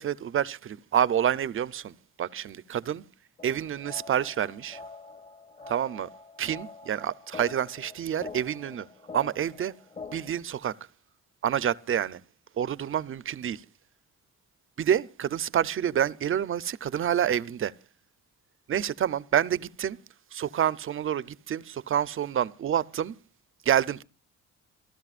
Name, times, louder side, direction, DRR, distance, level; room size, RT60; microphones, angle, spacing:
voice 1, 0.0-3.0 3.4-4.8 5.7-6.1 6.4-8.9 9.1-9.7 10.1-10.7 11.4-12.2 12.6-13.6 14.8-17.7 18.7-20.0 20.3-23.1 23.7-24.0, right 9 dB, 45° right, 0.7 m, -28 dB
sound 1, 3.4-10.4, left 4 dB, 25° left, 1.2 m, -45 dB
28.5 x 13.0 x 2.5 m
cardioid pair, 90°, 30 cm